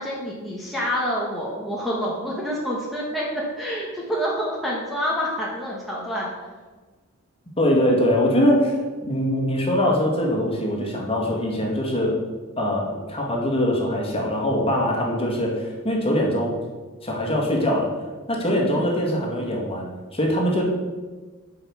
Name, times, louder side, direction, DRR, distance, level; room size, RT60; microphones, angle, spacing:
voice 1, 0.0-6.3 18.6-18.9, equal, ahead, -5 dB, 1.4 m, -27 dB
voice 2, 7.6-12.2 12.6-16.6 17.0-17.9 18.3-20.6, equal, 25° left, -2 dB, 2.1 m, -22 dB
9.0 x 5.6 x 6.5 m, 1.3 s
head